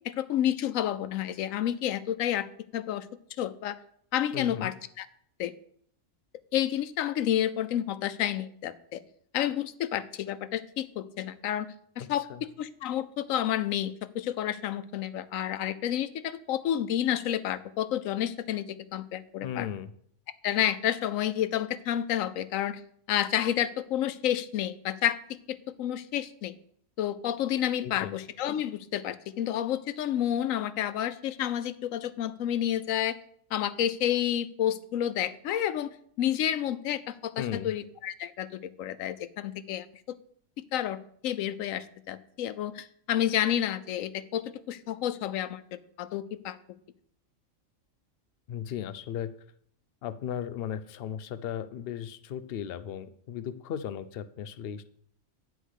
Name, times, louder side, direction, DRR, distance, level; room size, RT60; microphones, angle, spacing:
voice 1, 0.0-2.5 2.7-3.1 3.4-3.8 4.1-5.1 5.4-5.5 6.5-9.0 9.3-11.7 12.0-19.7 20.4-22.8 23.1-25.2 25.5-26.5 27.0-33.2 33.5-39.9 40.7-46.6, left 11 dB, 85° left, 13 dB, 1.0 m, -30 dB
voice 2, 4.3-4.7 12.0-12.5 19.4-19.9 27.8-28.1 37.4-37.7 48.5-49.3 50.0-54.8, left 9 dB, 60° left, 12 dB, 0.7 m, -36 dB
9.9 x 4.6 x 6.4 m, 0.64 s
omnidirectional pair, 1.4 m